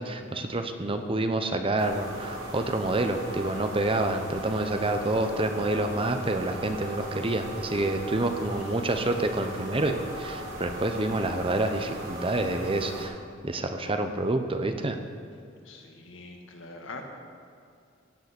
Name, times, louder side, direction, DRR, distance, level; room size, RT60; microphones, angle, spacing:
voice 1, 0.0-13.1 13.4-15.0, right 2 dB, 30° right, 7 dB, 0.8 m, -28 dB
sound 1, 1.8-13.0, right 1 dB, 70° right, 3.7 m, -38 dB
voice 2, 15.6-17.0, left 3 dB, 75° left, 2 dB, 1.8 m, -44 dB
16.5 x 7.9 x 6.1 m, 2.4 s
head